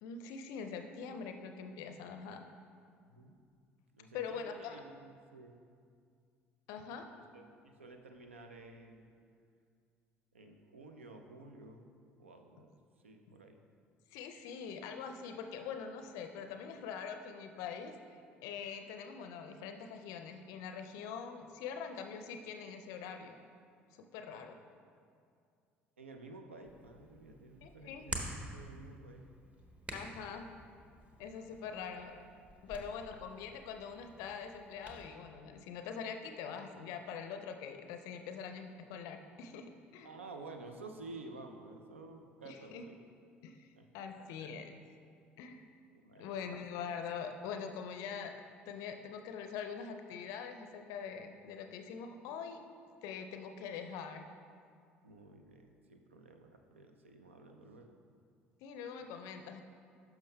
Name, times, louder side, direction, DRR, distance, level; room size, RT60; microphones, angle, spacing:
voice 1, 0.0-2.4 4.1-4.8 6.7-7.1 14.1-23.4 24.0-24.6 27.6-28.0 29.9-30.5 31.2-32.2 32.6-40.1 42.4-42.8 43.4-43.7 43.9-44.8 45.4-45.7 46.2-48.3 48.7-52.6 53.0-54.3 58.6-59.6, left 6 dB, 60° left, 6 dB, 0.4 m, -44 dB
voice 2, 3.0-3.4 3.9-5.6 7.3-9.1 10.3-11.9 12.2-12.7 13.0-13.6 26.0-29.3 31.5-31.6 32.7-32.8 40.0-43.0 43.8-44.4 45.9-46.4 55.0-58.0, right 3 dB, 85° right, 5 dB, 0.5 m, -52 dB
Hands, 26.6-35.1, right 1 dB, 20° right, 1.0 m, -48 dB
11.5 x 5.8 x 2.2 m, 2.3 s
figure-of-eight pair, 55°, 7 cm